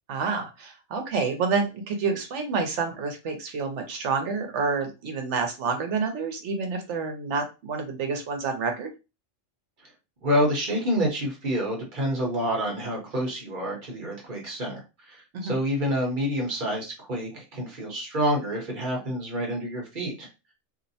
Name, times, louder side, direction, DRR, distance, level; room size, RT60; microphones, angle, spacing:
voice 1, 0.1-8.9 15.3-15.6, right 4 dB, 70° right, 5 dB, 1.0 m, -28 dB
voice 2, 10.2-20.3, equal, 45° right, -1 dB, 1.0 m, -28 dB
2.7 x 2.0 x 2.7 m, 0.27 s
omnidirectional pair, 1.3 m